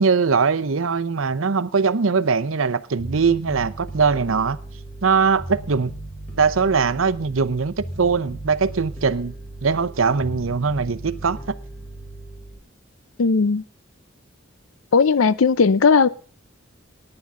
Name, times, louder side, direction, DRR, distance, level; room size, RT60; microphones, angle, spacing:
voice 1, 0.0-4.6 5.0-5.9 6.4-9.3 9.6-11.5, right 5 dB, 80° right, 0.7 m, -21 dB
Bass guitar, 3.0-12.6, right 1 dB, 10° left, 4.2 m, -37 dB
voice 2, 13.2-13.6 14.9-16.1, left 5 dB, 80° left, 0.5 m, -16 dB
18.0 x 9.9 x 3.7 m
head